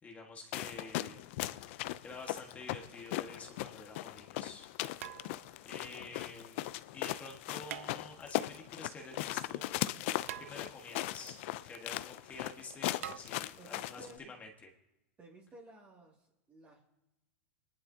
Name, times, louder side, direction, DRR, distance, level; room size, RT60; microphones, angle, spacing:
voice 1, 0.0-4.7 5.6-9.7 10.4-11.4 11.6-14.7, left 3 dB, 20° left, 1 dB, 1.6 m, -49 dB
sound 1, 0.5-14.1, left 16 dB, 60° left, 0.5 m, -39 dB
sound 2, 3.6-3.7 5.0-5.7 7.7-8.4 10.3-11.1 13.0-13.2, right 12 dB, 80° right, 0.5 m, -45 dB
voice 2, 13.6-14.3 15.2-16.9, right 2 dB, 20° right, -3 dB, 2.3 m, -55 dB
22.0 x 11.0 x 2.8 m, 0.95 s
supercardioid pair, 135°, 8 cm